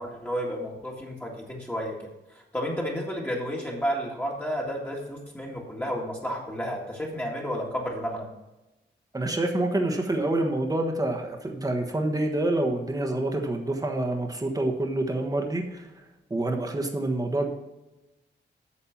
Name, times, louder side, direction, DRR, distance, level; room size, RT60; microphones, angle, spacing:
voice 1, 0.0-2.0 2.3-8.3, equal, 10° left, -3 dB, 1.9 m, -31 dB
voice 2, 9.1-15.9 16.3-17.5, right 2 dB, 20° right, 3 dB, 1.3 m, -27 dB
8.6 x 6.5 x 5.9 m, 0.99 s
wide cardioid pair, 105°, 19 cm